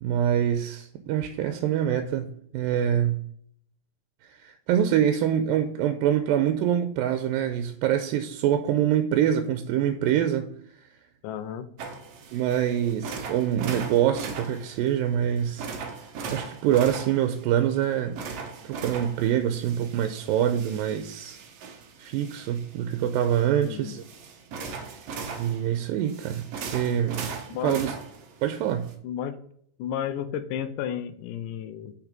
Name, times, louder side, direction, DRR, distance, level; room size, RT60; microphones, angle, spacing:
voice 1, 0.0-3.2 4.2-10.5 12.3-15.7 16.3-18.2 18.6-21.4 22.0-24.0 25.4-27.2 27.6-27.9 28.4-28.9, right 10 dB, 85° right, 2.3 m, -25 dB
voice 2, 11.2-11.7 23.6-23.9 27.5-27.8 29.0-29.4 29.8-31.9, left 9 dB, 80° left, 2.1 m, -32 dB
sound 1, 11.8-28.9, right 5 dB, 65° right, 1.7 m, -39 dB
6.2 x 5.9 x 5.0 m
omnidirectional pair, 4.0 m